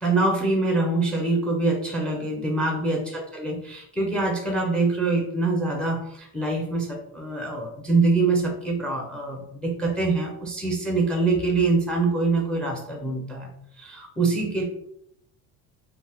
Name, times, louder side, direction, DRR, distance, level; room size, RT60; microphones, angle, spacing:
voice 1, 0.0-13.5 13.8-14.6, right 3 dB, 5° left, 1 dB, 0.4 m, -24 dB
2.7 x 2.0 x 3.3 m, 0.72 s
cardioid pair, 130°, 37 cm